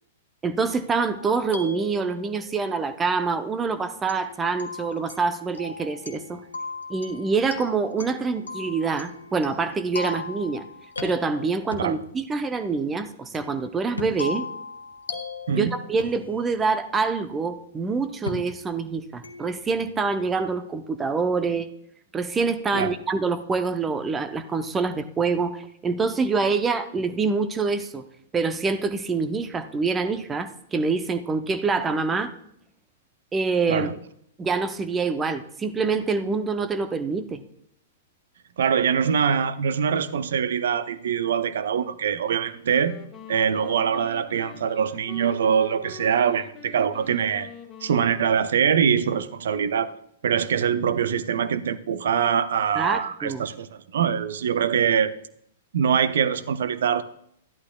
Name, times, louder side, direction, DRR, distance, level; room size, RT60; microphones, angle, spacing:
voice 1, 0.4-6.4 6.9-10.6 11.0-14.5 15.5-21.7 22.1-28.0 28.3-32.3 33.3-34.0 34.4-37.4 52.8-53.5, right 4 dB, 15° right, 11 dB, 0.7 m, -26 dB
sound 1, 1.1-2.6 4.1-12.0 13.3-16.7 18.3-18.4 19.2-19.7, left 4 dB, 70° left, 1.4 m, -38 dB
sound 2, 11.0-12.4 12.7-12.8 14.0-14.5 14.9-15.0 16.0-16.8 17.9-18.0 18.3-18.9, left 1 dB, 85° left, 1.1 m, -38 dB
voice 2, 38.6-43.0 43.3-47.5 47.8-49.9 50.2-55.1 55.7-57.0, right 7 dB, 60° right, 15 dB, 0.6 m, -23 dB
Wind instrument woodwind instrument, 42.6-49.1, left 7 dB, 20° left, 1.2 m, -45 dB
13.5 x 11.5 x 2.3 m, 0.72 s
figure-of-eight pair, 105°, 0 cm